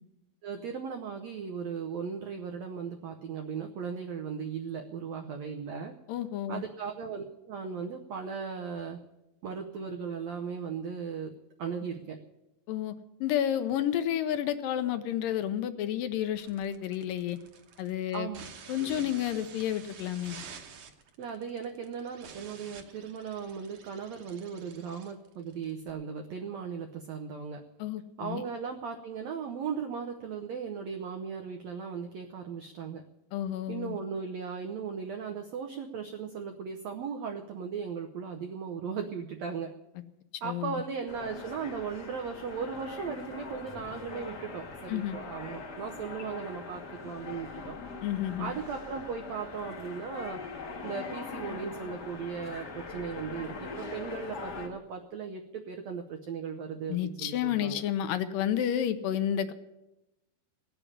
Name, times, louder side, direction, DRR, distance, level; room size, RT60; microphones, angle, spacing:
voice 1, 0.4-5.9 6.5-9.0 9.4-11.3 11.6-12.2 18.1-18.4 18.8-19.2 21.2-27.6 28.2-33.0 33.7-39.7 40.4-47.8 48.4-50.4 50.8-57.8, right 6 dB, 80° right, 4 dB, 1.5 m, -37 dB
voice 2, 6.1-6.6 12.7-12.9 13.2-17.4 17.8-18.3 18.7-20.4 27.8-28.4 33.3-34.0 40.4-40.8 44.9-45.2 48.0-48.5 56.9-59.5, left 10 dB, 75° left, 10 dB, 2.3 m, -30 dB
sound 1, 16.3-25.9, right 6 dB, 60° right, 1.8 m, -50 dB
sound 2, 41.1-54.7, left 4 dB, 50° left, 1.2 m, -42 dB
17.5 x 7.1 x 10.0 m, 0.97 s
omnidirectional pair, 4.2 m